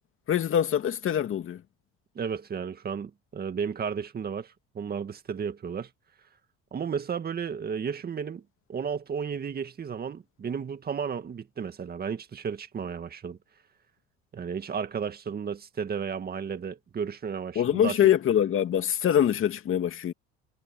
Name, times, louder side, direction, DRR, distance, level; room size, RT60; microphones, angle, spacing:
voice 1, 0.3-1.6 17.6-20.1, left 10 dB, 45° left, 2.4 m, -24 dB
voice 2, 2.2-5.9 6.7-8.4 8.7-13.4 14.3-18.0, right 6 dB, 30° right, 2.1 m, -33 dB
cardioid pair, 115°, 30 cm